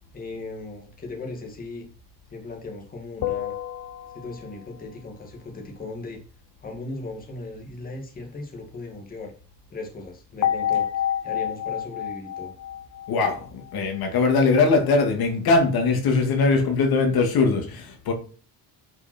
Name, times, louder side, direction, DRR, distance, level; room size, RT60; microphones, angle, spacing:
voice 1, 0.1-1.9 2.3-3.6 4.1-6.2 6.6-9.3 9.7-12.5, left 3 dB, 20° left, 2.2 m, -37 dB
sound 1, 3.2-4.7 10.4-13.8, left 10 dB, 40° left, 0.8 m, -29 dB
voice 2, 13.1-18.1, left 4 dB, 60° left, 2.5 m, -21 dB
10.5 x 5.8 x 4.5 m
cardioid pair, 175°, 41 cm